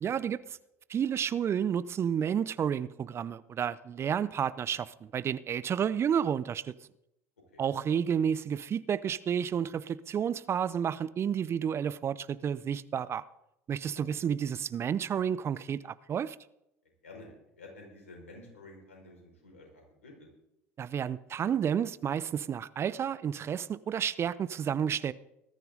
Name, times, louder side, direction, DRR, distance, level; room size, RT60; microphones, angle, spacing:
voice 1, 0.0-0.6 0.9-6.7 7.6-13.2 13.7-16.4 20.8-25.1, right 8 dB, 35° right, 0.7 m, -31 dB
voice 2, 16.8-20.3, left 2 dB, 85° left, 5.4 m, -51 dB
20.0 x 13.5 x 3.9 m
figure-of-eight pair, 65°, 7 cm